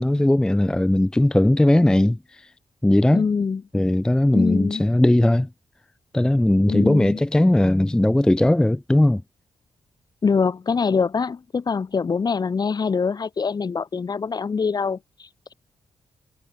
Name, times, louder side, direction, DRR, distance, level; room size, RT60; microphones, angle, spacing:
voice 1, 0.0-2.5 2.8-3.2 3.7-5.5 6.1-9.2, left 1 dB, 5° left, 0.5 m, -18 dB
voice 2, 3.1-3.6 4.3-4.8 6.7-7.2 10.2-15.0, left 5 dB, 40° left, 1.5 m, -23 dB
cardioid pair, 100°, 10 cm